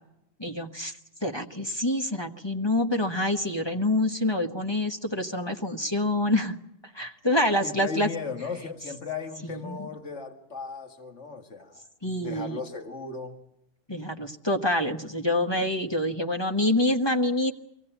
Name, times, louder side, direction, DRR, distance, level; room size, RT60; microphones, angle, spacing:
voice 1, 0.4-6.6 6.8-8.1 9.4-9.8 12.0-12.6 13.9-17.5, left 1 dB, 20° left, 5 dB, 1.2 m, -26 dB
voice 2, 7.6-11.8 12.2-13.4 14.0-14.1, left 5 dB, 60° left, 4 dB, 2.3 m, -36 dB
23.0 x 17.0 x 9.0 m, 0.82 s
omnidirectional pair, 1.3 m